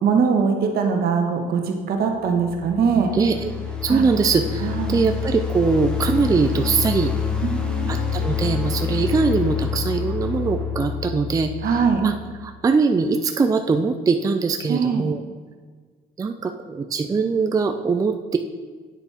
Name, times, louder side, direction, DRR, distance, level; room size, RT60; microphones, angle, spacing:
voice 1, 0.0-3.1 3.9-4.0 4.6-5.0 7.4-7.9 11.6-12.0 14.7-15.1, right 5 dB, 65° right, 4 dB, 1.3 m, -22 dB
sound 1, 2.1-12.4, left 7 dB, 5° left, 1.1 m, -27 dB
voice 2, 3.1-3.5 3.8-7.1 7.9-12.1 12.4-15.2 16.2-18.4, right 4 dB, 20° right, 6 dB, 0.4 m, -22 dB
9.0 x 7.0 x 3.6 m, 1.5 s
cardioid pair, 110°, 17 cm